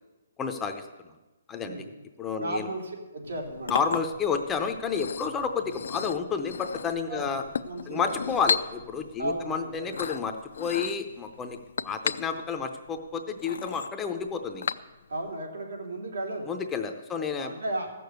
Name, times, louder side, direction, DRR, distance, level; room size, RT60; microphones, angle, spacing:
voice 1, 0.4-0.9 1.5-1.8 2.2-2.7 3.7-7.4 7.9-11.6 11.8-14.7 16.5-17.5, left 6 dB, 10° left, 5 dB, 0.6 m, -30 dB
voice 2, 2.4-3.7 7.1-7.4 7.6-8.2 9.2-10.0 15.1-16.6 17.3-17.9, right 1 dB, 90° right, 0 dB, 3.2 m, -34 dB
Chink clink, 3.2-15.3, left 6 dB, 70° left, 0.5 m, -35 dB
15.0 x 6.8 x 7.9 m, 1.1 s
hypercardioid pair, 170°, 0 cm